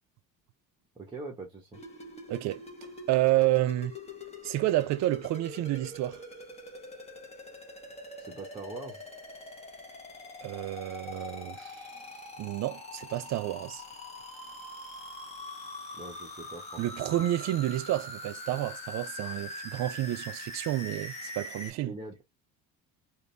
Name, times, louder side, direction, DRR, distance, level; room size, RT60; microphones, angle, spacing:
voice 1, 0.9-1.8 8.2-9.0 15.9-17.1 21.8-22.2, right 3 dB, 15° right, 1.1 m, -43 dB
sound 1, 1.7-21.7, left 2 dB, 15° left, 1.2 m, -43 dB
voice 2, 2.3-2.6 3.1-4.0 4.4-6.2 10.4-11.9 12.4-13.8 16.8-21.9, right 15 dB, 50° right, 0.5 m, -30 dB
3.7 x 2.7 x 3.3 m
cardioid pair, 145°, 36 cm